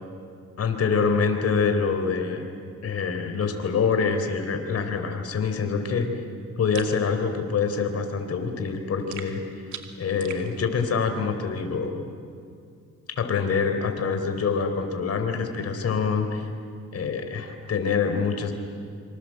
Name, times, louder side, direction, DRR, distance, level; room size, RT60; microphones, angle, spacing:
voice 1, 0.6-2.5 2.8-6.1 6.6-9.6 10.0-12.0 13.2-16.5 16.9-18.5, left 5 dB, 55° left, 6 dB, 3.9 m, -25 dB
sound 1, 6.7-7.0 9.1-10.5, right 8 dB, 75° right, 2.4 m, -39 dB
26.0 x 26.0 x 7.7 m, 2.3 s
cardioid pair, 90°, 30 cm